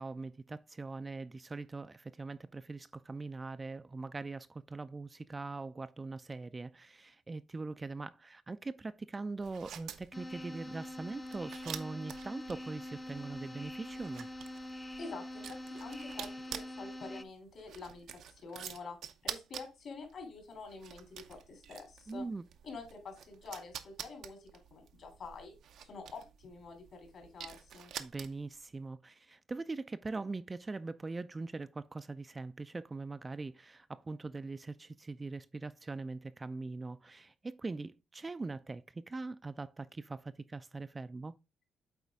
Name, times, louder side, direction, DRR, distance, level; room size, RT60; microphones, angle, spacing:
voice 1, 0.0-14.3 22.1-22.4 28.0-41.4, right 3 dB, 25° right, 0.4 m, -42 dB
sound 1, 9.4-28.6, right 9 dB, 75° right, 0.6 m, -48 dB
sound 2, 10.1-17.2, left 1 dB, 15° left, 0.7 m, -44 dB
voice 2, 15.0-19.0 19.2-22.3 22.6-25.5 25.8-27.9, left 4 dB, 60° left, 3.1 m, -47 dB
8.0 x 4.2 x 3.5 m
cardioid pair, 90°, 0 cm